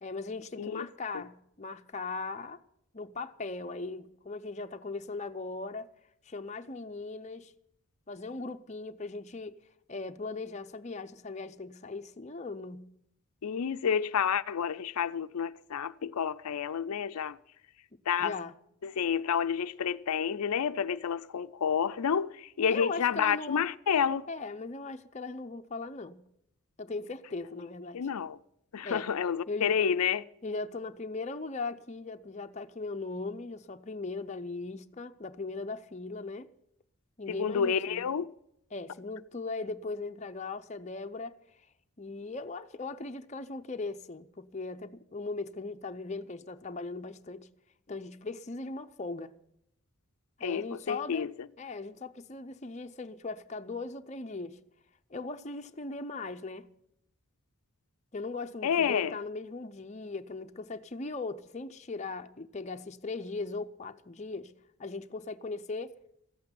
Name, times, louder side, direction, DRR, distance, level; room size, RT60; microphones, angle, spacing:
voice 1, 0.0-2.6 2.9-5.9 6.3-7.5 8.1-9.6 9.9-12.8 18.2-18.5 22.7-23.6 24.3-26.2 26.8-28.0 28.8-29.1 29.5-29.7 30.4-36.5 37.2-38.1 38.7-41.4 42.0-47.5 47.9-49.3 50.4-51.3 51.6-54.6 55.1-56.7 58.1-64.5 64.8-65.9, left 3 dB, 30° left, 0.6 m, -38 dB
voice 2, 13.4-17.4 18.1-18.3 18.8-24.3 27.9-28.4 28.7-30.2 37.3-38.3 50.4-51.5 58.6-59.2, left 7 dB, 90° left, 0.5 m, -29 dB
14.5 x 8.4 x 9.6 m
head